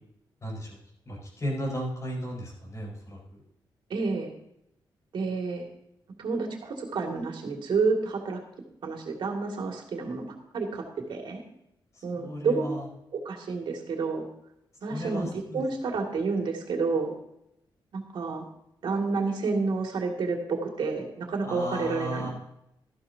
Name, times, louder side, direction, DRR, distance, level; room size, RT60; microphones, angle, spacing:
voice 1, 0.4-0.8 1.1-3.2 12.1-12.8 14.9-15.6 21.4-22.3, equal, 35° left, -2 dB, 4.8 m, -34 dB
voice 2, 3.9-4.3 5.1-5.7 6.2-8.4 8.8-10.8 11.1-11.4 12.0-12.8 13.1-14.3 14.8-17.1 17.9-18.5 18.8-22.3, right 4 dB, 70° right, 1 dB, 2.3 m, -29 dB
13.5 x 12.0 x 2.8 m, 0.80 s
cardioid pair, 115°, 8 cm